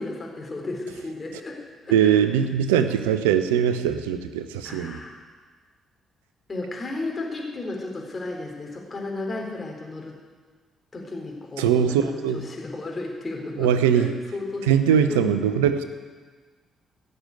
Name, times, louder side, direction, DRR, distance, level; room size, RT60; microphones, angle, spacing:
voice 1, 0.0-2.2 4.6-5.2 6.5-10.2 10.9-15.4, left 2 dB, 35° left, 0 dB, 3.8 m, -34 dB
voice 2, 1.9-5.0 11.6-12.5 13.6-14.2 14.7-15.8, right 8 dB, 80° right, 11 dB, 0.7 m, -21 dB
16.0 x 6.7 x 9.2 m, 1.5 s
hypercardioid pair, 45°, 0 cm